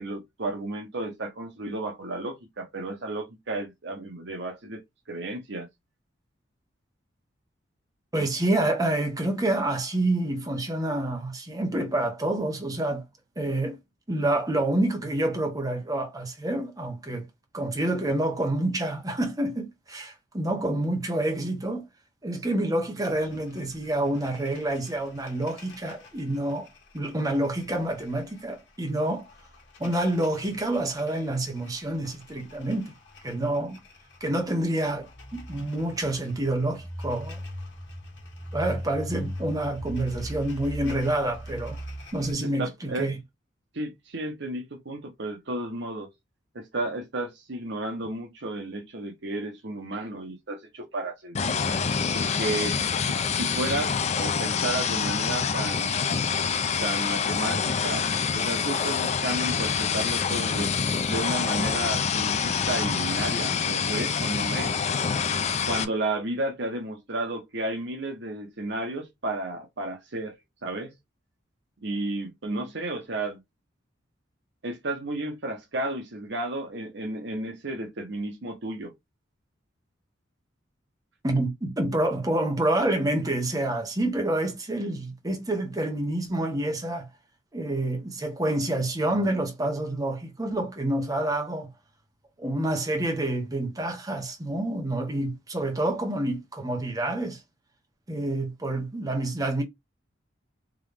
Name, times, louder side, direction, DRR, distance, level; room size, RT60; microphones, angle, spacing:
voice 1, 0.0-4.8 5.1-5.7 42.4-43.1 43.7-46.1 46.5-51.6 52.1-52.8 53.0-56.0 56.8-58.1 58.3-60.8 61.1-64.7 65.7-70.4 70.6-70.9 71.8-73.4 74.6-78.9, right 2 dB, 65° right, 1.1 m, -32 dB
voice 2, 8.1-13.0 13.4-13.8 14.1-17.3 17.5-21.8 22.2-26.7 26.9-29.2 29.8-32.9 33.2-33.8 34.2-37.4 38.5-41.8 42.1-43.2 81.2-87.1 87.5-91.7 92.4-97.4 98.1-99.6, right 1 dB, 20° right, 1.1 m, -28 dB
sound 1, 23.1-42.3, equal, 65° left, 1.5 m, -41 dB
sound 2, 51.3-65.8, left 6 dB, 35° left, 0.4 m, -26 dB
3.6 x 3.0 x 3.4 m
head